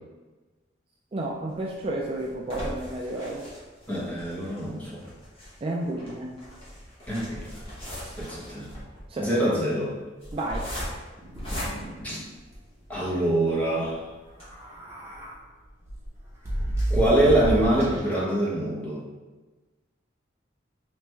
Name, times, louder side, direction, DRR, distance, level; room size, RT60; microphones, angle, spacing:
voice 1, 1.1-3.4 5.6-6.3 8.0-8.1 8.4-8.5 9.1-9.3 10.3-10.7, right 1 dB, 30° right, -2 dB, 0.3 m, -31 dB
sound 1, 1.5-12.9 13.4-13.5 13.8-13.9 14.3-14.4, equal, 30° left, 1.0 m, -39 dB
voice 2, 3.9-5.1 7.1-7.5 8.2-8.7 9.2-10.0 12.0-12.2 12.9-14.0 16.9-19.0, right 1 dB, 10° left, -6 dB, 0.8 m, -24 dB
sound 2, 11.2-12.2 12.5-12.6 12.9-13.1 14.3-15.3 15.8-18.1, right 1 dB, 15° right, 1.0 m, -31 dB
3.3 x 3.1 x 3.2 m, 1.3 s
head